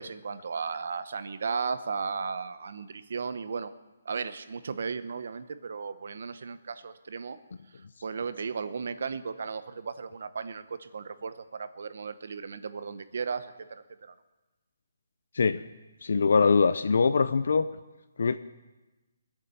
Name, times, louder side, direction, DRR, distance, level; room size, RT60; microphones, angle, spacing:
voice 1, 0.0-3.7 4.0-7.4 8.0-14.1, right 5 dB, 55° right, 12 dB, 0.9 m, -35 dB
voice 2, 16.0-17.6 18.2-18.4, left 5 dB, 60° left, 12 dB, 0.6 m, -22 dB
22.0 x 8.4 x 7.0 m, 1.1 s
hypercardioid pair, 175°, 0 cm